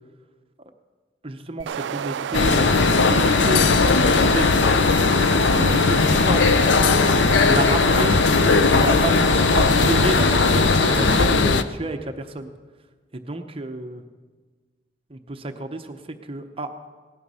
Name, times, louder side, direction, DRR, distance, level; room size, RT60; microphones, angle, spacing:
voice 1, 1.2-3.6 4.0-4.4 5.4-6.5 7.5-12.5 13.3-14.0 15.1-16.0 16.3-16.7, right 2 dB, 30° right, 6 dB, 0.9 m, -30 dB
sound 1, 1.6-11.3, right 8 dB, 80° right, 0.3 m, -29 dB
sound 2, 2.3-11.6, left 4 dB, 85° left, 0.6 m, -18 dB
17.5 x 11.0 x 5.5 m, 1.4 s
head